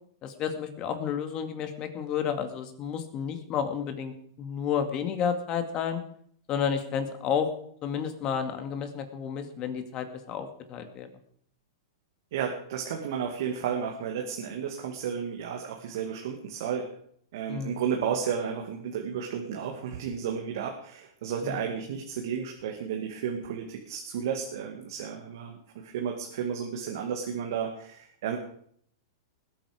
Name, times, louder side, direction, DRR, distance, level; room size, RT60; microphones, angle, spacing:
voice 1, 0.2-4.1 4.4-6.0 6.5-7.5 7.8-11.1 17.5-17.8 21.4-21.6, left 7 dB, 35° left, 6 dB, 2.4 m, -31 dB
voice 2, 12.3-16.9 17.3-28.4, right 7 dB, 65° right, 2 dB, 2.2 m, -33 dB
20.5 x 8.7 x 5.1 m, 0.64 s
hypercardioid pair, 120°, 2 cm